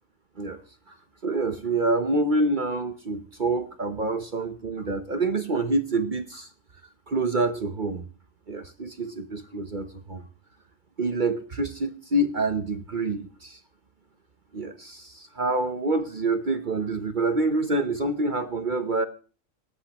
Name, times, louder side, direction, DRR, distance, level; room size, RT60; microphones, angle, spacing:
voice 1, 1.2-6.5 7.1-8.0 8.5-10.2 11.0-13.6 14.5-19.1, right 2 dB, 40° right, 9 dB, 0.9 m, -27 dB
18.0 x 16.0 x 3.0 m, 0.37 s
omnidirectional pair, 1.4 m